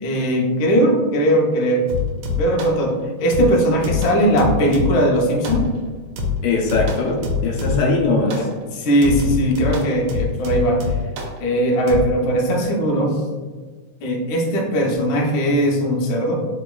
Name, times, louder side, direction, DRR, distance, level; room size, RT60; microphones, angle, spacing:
voice 1, 0.0-1.8 2.4-5.6 8.2-11.0 11.4-13.2 14.0-16.4, right 1 dB, 70° left, -1 dB, 1.3 m, -19 dB
sound 1, 1.9-2.8 3.3-5.1 5.4-5.9 6.2-8.0 8.3-8.5 9.0-11.4 11.9-12.0, left 4 dB, 90° right, 1.5 m, -25 dB
voice 2, 6.4-8.5, left 3 dB, 85° left, 0 dB, 1.5 m, -20 dB
3.6 x 2.9 x 2.2 m, 1.4 s
omnidirectional pair, 2.4 m